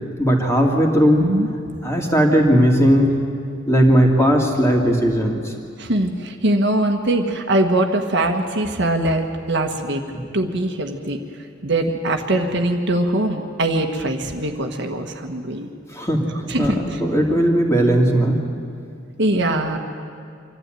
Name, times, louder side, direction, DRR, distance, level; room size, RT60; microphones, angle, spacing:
voice 1, 0.2-1.3 1.8-3.1 3.7-5.4 10.1-10.2 15.9-16.3 16.6-18.4, equal, 15° left, 0 dB, 2.5 m, -17 dB
voice 2, 5.8-10.0 10.3-11.2 11.6-15.7 16.5-17.0 19.2-19.8, right 1 dB, 65° right, 4 dB, 1.5 m, -22 dB
25.5 x 12.5 x 9.1 m, 2.3 s
head